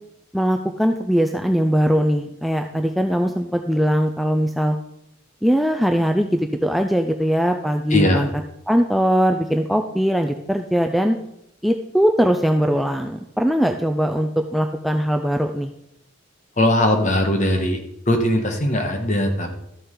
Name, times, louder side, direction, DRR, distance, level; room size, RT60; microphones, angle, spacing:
voice 1, 0.3-4.8 5.4-8.3 8.7-11.2 11.6-15.7, equal, ahead, 4 dB, 0.4 m, -20 dB
voice 2, 7.9-8.3 16.6-17.8 18.1-19.5, left 1 dB, 35° left, 4 dB, 1.4 m, -19 dB
13.0 x 6.9 x 3.8 m, 0.78 s
head